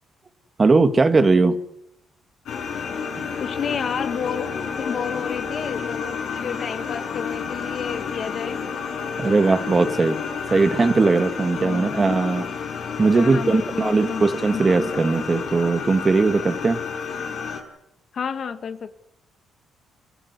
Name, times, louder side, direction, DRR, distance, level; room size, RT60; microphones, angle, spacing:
voice 1, 0.6-1.6 9.2-10.2 10.5-12.5 13.0-16.8, right 3 dB, 30° right, 9 dB, 2.0 m, -19 dB
sound 1, 2.5-17.6, left 6 dB, 75° left, 6.3 m, -30 dB
voice 2, 3.4-8.6 11.6-12.0 13.1-14.3 14.5-14.6 18.1-18.9, left 6 dB, 55° left, 9 dB, 2.0 m, -30 dB
28.0 x 16.5 x 9.7 m, 0.82 s
cardioid pair, 90°, 0 cm